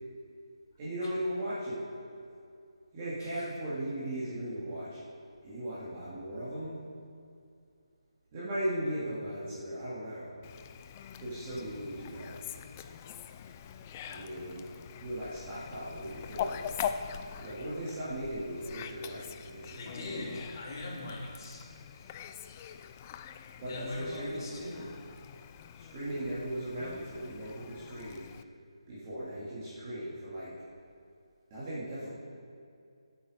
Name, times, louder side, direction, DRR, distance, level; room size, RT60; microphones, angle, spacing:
voice 1, 0.8-1.8 2.9-5.0 5.4-6.8 8.3-10.3 11.2-12.4 14.1-14.6 15.0-16.7 17.4-20.3 23.6-24.9 25.7-28.2 28.9-30.5 31.5-32.1, right 1 dB, 25° right, -10 dB, 3.0 m, -37 dB
Fowl, 10.4-28.4, left 8 dB, 25° left, 0.4 m, -43 dB
voice 2, 19.7-22.2 23.7-25.1, left 2 dB, 40° left, -3 dB, 3.3 m, -42 dB
18.0 x 8.4 x 5.3 m, 2.4 s
figure-of-eight pair, 160°, 3 cm